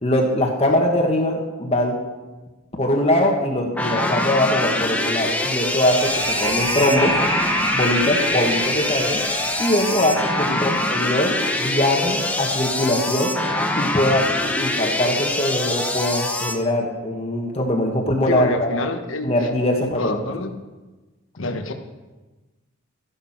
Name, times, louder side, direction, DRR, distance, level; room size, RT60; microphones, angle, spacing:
voice 1, 0.0-1.9 2.8-7.1 7.7-9.2 9.6-13.3 13.8-14.3 14.6-18.7 19.2-20.2, left 1 dB, 30° left, 1 dB, 1.5 m, -22 dB
sound 1, 3.8-16.5, left 1 dB, 5° left, 1.0 m, -24 dB
sound 2, 5.2-14.5, equal, 30° right, 2.1 m, -29 dB
voice 2, 10.4-10.8 18.3-19.5 19.8-20.5 21.4-21.7, left 2 dB, 65° left, 6 dB, 1.2 m, -27 dB
13.5 x 11.0 x 5.9 m, 1.2 s
head